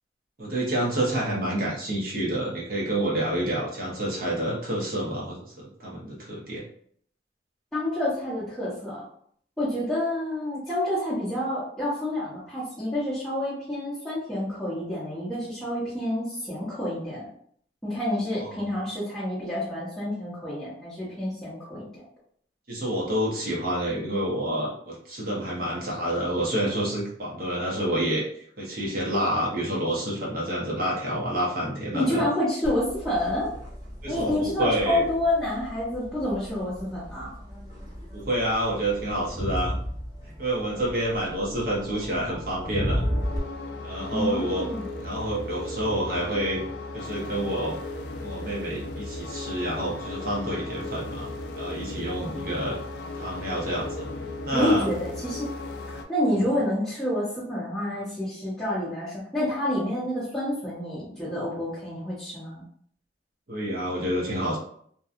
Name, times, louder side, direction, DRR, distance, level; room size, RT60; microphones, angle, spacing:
voice 1, 0.4-6.6 18.4-18.6 22.7-28.3 28.6-32.3 34.0-35.0 38.1-39.7 40.2-43.0 43.8-44.7 45.0-46.6 46.9-47.8 48.2-51.3 51.6-52.8 53.1-54.1 54.4-54.9 56.4-56.5 63.5-64.6, right 1 dB, 50° right, -4 dB, 0.8 m, -28 dB
voice 2, 7.7-9.0 9.6-17.3 17.8-22.0 31.9-33.5 34.1-37.3 44.1-44.9 54.5-55.5 56.1-62.6, left 1 dB, 5° left, -13 dB, 0.8 m, -28 dB
Crowd, 32.6-43.4, equal, 20° right, 1.0 m, -34 dB
sound 1, 43.0-56.0, left 2 dB, 65° left, 0.3 m, -36 dB
2.7 x 2.2 x 2.5 m, 0.63 s
head